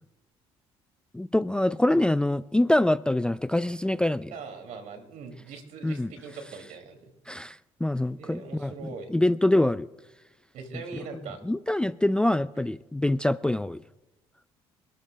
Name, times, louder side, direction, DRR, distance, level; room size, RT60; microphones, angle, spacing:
voice 1, 1.1-4.3 5.8-6.1 7.3-9.9 11.0-11.1 11.4-13.8, left 1 dB, 5° left, 0.3 m, -25 dB
voice 2, 4.3-7.0 8.2-9.1 10.5-11.4 12.5-12.7, right 5 dB, 70° right, 2.5 m, -41 dB
23.5 x 12.5 x 2.2 m
supercardioid pair, 65°, 13 cm